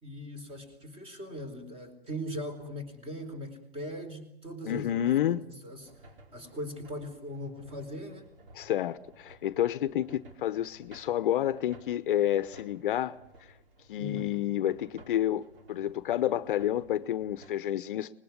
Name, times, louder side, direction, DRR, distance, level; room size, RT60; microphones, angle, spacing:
voice 1, 0.0-5.9 6.3-8.3 14.0-14.3, equal, 20° right, 4.4 m, -40 dB
voice 2, 4.7-5.4 8.5-13.5 13.9-18.2, left 12 dB, 55° left, 0.9 m, -29 dB
sound 1, 5.8-17.5, right 1 dB, 65° right, 4.6 m, -56 dB
24.5 x 20.5 x 9.7 m
hypercardioid pair, 140°, 30 cm